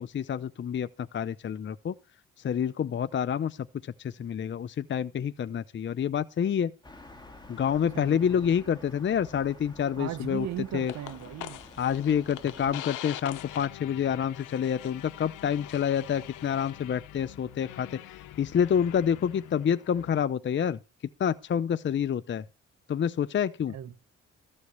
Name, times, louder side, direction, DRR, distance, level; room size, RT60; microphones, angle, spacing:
voice 1, 0.0-1.9 2.4-3.6 4.0-6.7 7.5-10.5 10.7-10.9 11.8-18.0 18.4-20.8 21.2-22.4 22.9-23.7, left 8 dB, 40° left, 0.6 m, -28 dB
sound 1, 6.8-12.8, left 2 dB, 15° left, 3.0 m, -50 dB
voice 2, 7.9-8.5 10.0-11.6 12.6-12.8 23.7-23.9, right 11 dB, 65° right, 1.3 m, -37 dB
sound 2, 10.9-20.2, left 13 dB, 85° left, 1.0 m, -44 dB
14.0 x 5.3 x 8.0 m
cardioid pair, 90°, 30 cm